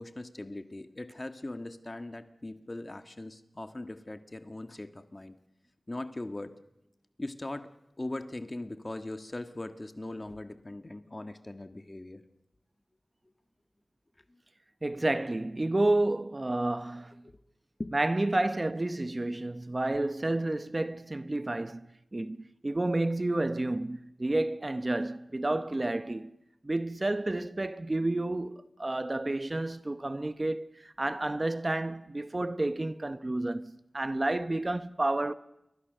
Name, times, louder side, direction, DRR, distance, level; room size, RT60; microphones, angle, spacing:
voice 1, 0.0-5.3 5.9-6.5 7.2-7.7 8.0-12.2 17.8-17.9, left 2 dB, 35° left, 1.6 m, -40 dB
voice 2, 14.8-17.2 17.9-26.3 26.6-35.3, right 2 dB, 35° right, 0.9 m, -30 dB
28.5 x 23.0 x 6.6 m
wide cardioid pair, 50°, 0 cm